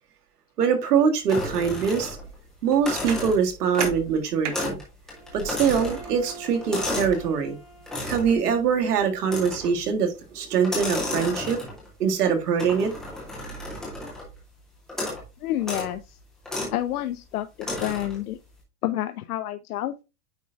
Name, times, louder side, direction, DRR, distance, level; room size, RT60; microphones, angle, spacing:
voice 1, 0.6-2.2 2.6-4.8 5.3-7.6 8.1-11.6 12.0-12.9, right 6 dB, 90° right, 1.8 m, -23 dB
sound 1, 1.3-2.4 2.7-4.1 4.5-4.8 5.1-7.2 7.9-8.4 9.3-9.8 10.6-11.9 12.6-14.3 14.9-15.3 15.6-15.9 16.5-16.8 17.6-18.2, left 1 dB, ahead, 0.4 m, -32 dB
sound 2, 3.0-9.0, right 7 dB, 55° right, 1.1 m, -41 dB
Bowed string instrument, 5.1-8.5, right 4 dB, 15° right, 1.9 m, -45 dB
voice 2, 15.4-16.2 16.7-18.4 18.8-19.9, left 13 dB, 75° left, 0.6 m, -29 dB
9.0 x 4.4 x 2.5 m
supercardioid pair, 165°, 45 cm